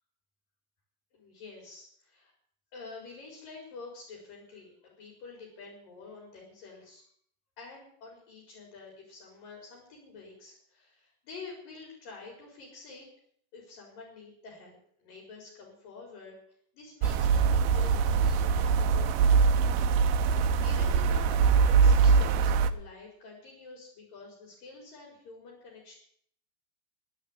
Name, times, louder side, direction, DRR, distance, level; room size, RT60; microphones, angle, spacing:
voice 1, 1.1-2.3 2.7-7.0 7.6-13.1 13.5-16.4 16.7-25.9, left 4 dB, 55° left, -1 dB, 6.4 m, -48 dB
sound 1, 17.0-22.7, right 5 dB, 80° right, 2.6 m, -23 dB
12.0 x 11.0 x 9.8 m, 0.63 s
omnidirectional pair, 4.7 m